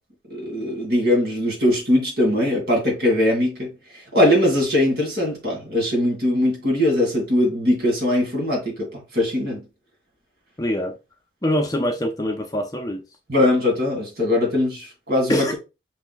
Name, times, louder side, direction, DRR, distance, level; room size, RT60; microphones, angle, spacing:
voice 1, 0.3-3.7 4.1-9.6 13.3-15.5, left 1 dB, 65° right, 2.5 m, -21 dB
voice 2, 10.6-11.0 11.4-13.0 15.3-15.5, equal, 20° left, 0.6 m, -24 dB
5.4 x 4.3 x 2.2 m
head